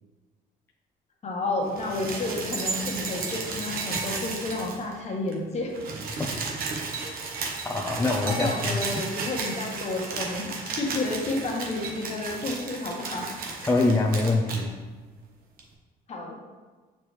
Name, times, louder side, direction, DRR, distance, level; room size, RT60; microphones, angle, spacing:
voice 1, 1.2-5.8 7.0-7.1 8.2-13.3 16.1-16.3, left 2 dB, 40° left, 0 dB, 1.3 m, -31 dB
sound 1, 1.7-5.0 5.3-5.4 5.6-14.6 15.6-15.7, right 4 dB, 60° right, 1.1 m, -34 dB
voice 2, 6.2-6.5 7.6-8.9 13.6-14.7, left 2 dB, 15° left, -2 dB, 0.5 m, -25 dB
6.7 x 4.4 x 3.2 m, 1.3 s
cardioid pair, 110°, 17 cm